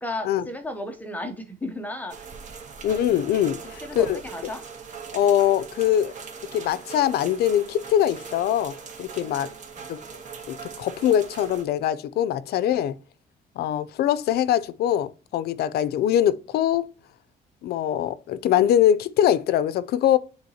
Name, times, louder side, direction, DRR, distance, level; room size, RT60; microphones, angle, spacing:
voice 1, 0.0-2.3 3.8-4.6 9.2-9.5 9.8-9.9, left 1 dB, 10° left, 0.7 m, -34 dB
sound 1, 2.1-11.6, right 6 dB, 50° right, 1.2 m, -40 dB
voice 2, 2.8-4.5 5.1-6.1 6.5-9.5 9.9-10.0 10.5-13.0 13.6-16.9 17.6-20.2, left 11 dB, 75° left, 0.5 m, -23 dB
9.6 x 3.8 x 2.8 m
cardioid pair, 160°, 17 cm